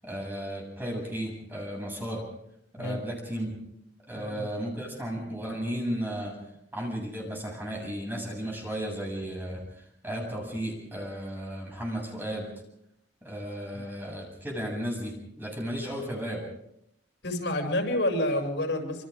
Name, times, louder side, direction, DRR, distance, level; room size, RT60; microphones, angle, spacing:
voice 1, 0.0-2.2 2.7-3.5 4.1-6.3 6.7-9.6 10.0-12.5 13.2-16.4, equal, 10° right, -1 dB, 7.9 m, -34 dB
voice 2, 17.2-19.0, left 1 dB, 80° left, 4 dB, 7.0 m, -28 dB
28.0 x 26.5 x 3.8 m, 0.75 s
head